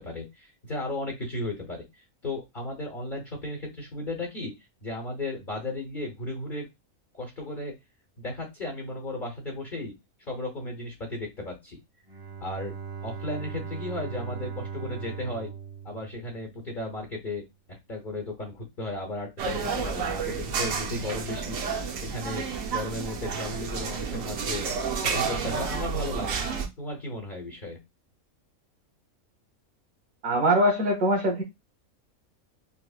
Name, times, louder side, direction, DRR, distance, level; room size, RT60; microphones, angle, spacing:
voice 1, 0.0-4.5 4.8-6.7 7.1-7.7 8.2-9.9 10.2-11.8 12.4-12.7 13.0-15.5 15.8-17.4 17.9-21.6 22.0-24.7 25.0-26.5 26.8-27.8, left 2 dB, 40° left, 1 dB, 1.0 m, -35 dB
Bowed string instrument, 12.1-16.8, right 7 dB, 30° right, 0.8 m, -39 dB
sound 1, 19.4-26.7, right 5 dB, 70° right, 1.0 m, -30 dB
voice 2, 30.2-31.4, right 1 dB, 90° right, 0 dB, 1.4 m, -22 dB
5.5 x 2.1 x 2.4 m, 0.21 s
omnidirectional pair, 1.5 m